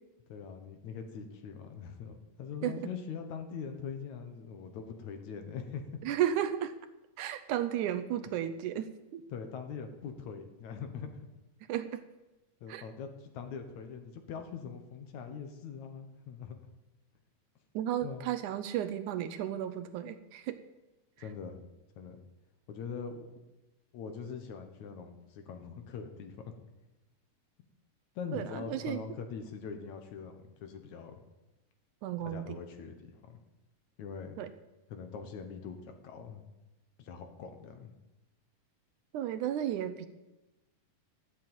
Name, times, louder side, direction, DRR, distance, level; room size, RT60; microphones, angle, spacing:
voice 1, 0.3-5.8 9.3-11.3 12.6-16.6 18.0-18.2 21.2-21.6 22.0-22.2 22.7-23.3 23.9-26.5 28.2-31.2 32.2-33.4 34.0-34.4 34.9-36.5 37.0-37.9, left 6 dB, 65° left, 6 dB, 2.5 m, -42 dB
voice 2, 6.0-6.7 7.2-9.2 11.7-12.0 12.7-12.8 17.8-20.6 28.3-29.0 32.0-32.6 34.4-34.5 39.1-40.1, right 11 dB, 75° right, 11 dB, 2.1 m, -33 dB
13.0 x 7.6 x 9.0 m, 1.0 s
omnidirectional pair, 3.7 m